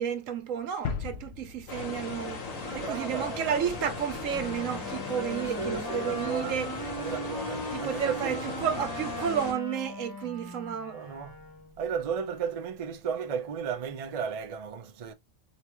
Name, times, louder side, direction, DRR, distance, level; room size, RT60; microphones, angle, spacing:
voice 1, 0.0-6.8 7.7-11.0, right 8 dB, 80° right, 1.1 m, -32 dB
sound 1, 0.8-3.5, left 7 dB, 65° left, 0.7 m, -38 dB
sound 2, 1.7-9.5, left 4 dB, 85° left, 1.3 m, -37 dB
voice 2, 2.5-3.5 5.1-6.7 7.0-8.4 10.9-11.4 11.8-15.1, right 6 dB, 45° right, 0.5 m, -35 dB
Wind instrument woodwind instrument, 3.8-11.8, equal, 20° left, 0.6 m, -40 dB
3.9 x 2.2 x 2.9 m
omnidirectional pair, 1.3 m